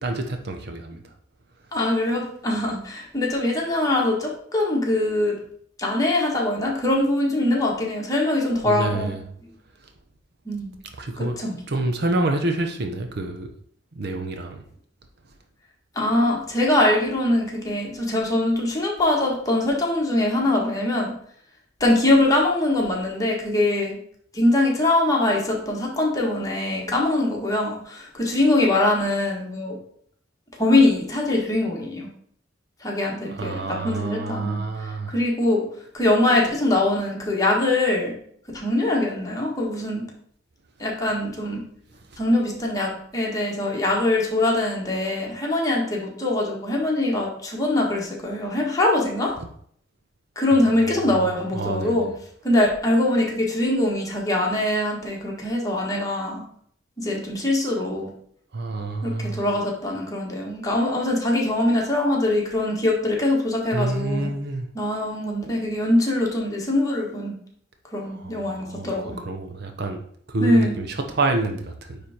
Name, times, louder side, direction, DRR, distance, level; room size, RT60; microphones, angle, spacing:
voice 1, 0.0-1.0 8.6-9.2 11.0-11.4 11.7-13.5 13.9-14.6 33.2-35.1 42.1-42.2 49.4-49.5 50.5-51.2 51.5-52.1 58.5-59.5 63.7-64.7 68.0-70.0 70.3-72.0, right 2 dB, 60° right, 5 dB, 0.8 m, -28 dB
voice 2, 1.7-5.3 5.8-9.1 10.4-10.7 11.2-11.6 15.9-21.1 21.8-24.0 24.3-29.8 30.6-32.1 32.8-34.6 35.1-35.6 35.9-38.1 38.5-40.1 40.8-41.6 42.2-49.3 50.3-52.1 52.4-56.4 57.0-58.1 59.0-64.3 64.7-67.4 67.9-69.2 70.4-70.8, left 1 dB, 20° left, -2 dB, 1.7 m, -22 dB
9.5 x 3.4 x 4.4 m, 0.63 s
head